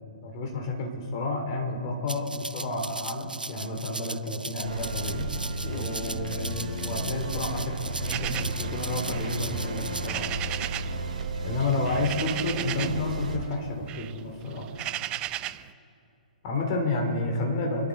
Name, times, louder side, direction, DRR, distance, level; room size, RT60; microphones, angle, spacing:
voice 1, 0.2-5.3 5.6-10.3 11.4-14.7 16.4-17.9, left 2 dB, 35° left, 2 dB, 3.0 m, -30 dB
Rattle (instrument), 2.1-10.1, right 2 dB, 85° right, 0.4 m, -38 dB
sound 1, 4.6-13.4, right 3 dB, 60° right, 2.8 m, -33 dB
sound 2, 8.1-11.0 11.3-13.1 13.4-15.7, right 14 dB, 20° right, 0.4 m, -35 dB
28.0 x 12.5 x 4.0 m, 2.7 s
figure-of-eight pair, 125°, 5 cm